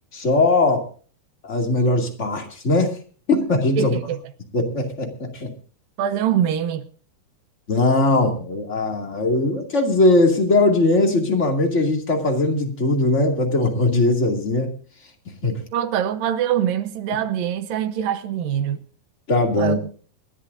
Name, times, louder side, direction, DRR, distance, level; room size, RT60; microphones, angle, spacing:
voice 1, 0.1-0.9 1.4-3.0 3.3-4.0 4.5-5.5 7.7-14.7 15.4-15.6 19.3-19.8, left 2 dB, 25° left, 1.8 m, -20 dB
voice 2, 3.8-4.2 6.0-6.9 15.7-18.8 19.6-19.8, right 9 dB, 70° right, 2.4 m, -23 dB
28.5 x 11.0 x 2.6 m
omnidirectional pair, 4.6 m